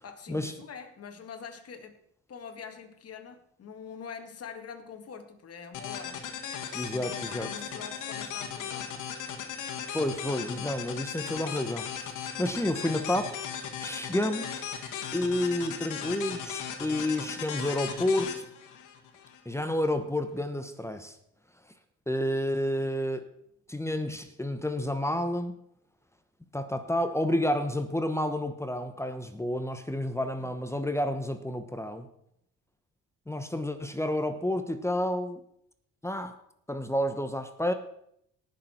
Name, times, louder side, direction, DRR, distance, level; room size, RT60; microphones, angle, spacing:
voice 1, 0.0-2.0 2.3-6.2 6.7-9.0 30.4-30.5, left 6 dB, 55° left, 6 dB, 1.9 m, -44 dB
sound 1, 5.7-19.4, left 8 dB, 80° left, 1.7 m, -37 dB
voice 2, 6.7-7.5 9.9-11.8 12.4-13.3 13.8-14.6 15.1-18.4 19.4-21.2 22.1-23.2 23.7-25.5 26.5-32.1 33.3-35.4 36.0-36.3 36.7-37.7, left 1 dB, 10° left, 8 dB, 1.0 m, -30 dB
18.5 x 6.8 x 4.5 m, 0.73 s
cardioid pair, 90°, 30 cm